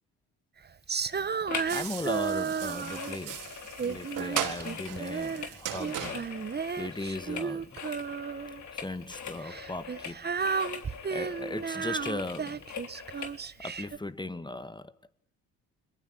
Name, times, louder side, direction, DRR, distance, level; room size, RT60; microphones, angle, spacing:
Female singing, 0.9-3.3 3.8-5.5 5.8-8.6 9.4-14.0, right 6 dB, 30° right, 1.1 m, -33 dB
sound 1, 1.5-1.8 2.1-13.4 13.9-14.0, left 7 dB, 55° left, 3.6 m, -42 dB
voice 1, 1.7-3.5 3.8-6.3 6.8-7.8 8.7-10.3 11.1-12.6 13.2-13.3 13.6-14.9, left 2 dB, 15° left, 1.8 m, -37 dB
sound 2, 1.7-7.4, right 10 dB, 70° right, 4.0 m, -38 dB
30.0 x 22.5 x 8.8 m
supercardioid pair, 60°, 34 cm